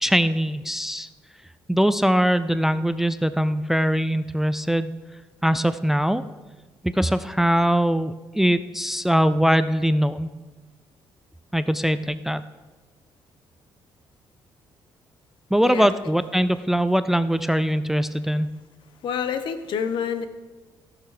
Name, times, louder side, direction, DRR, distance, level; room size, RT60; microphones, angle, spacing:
voice 1, 0.0-1.1 1.7-4.9 5.4-6.2 6.8-10.3 11.5-12.4 15.5-18.5, equal, 5° right, 13 dB, 0.3 m, -22 dB
voice 2, 19.0-20.3, left 7 dB, 70° left, 10 dB, 0.9 m, -27 dB
16.0 x 6.8 x 4.9 m, 1.3 s
cardioid pair, 125°, 8 cm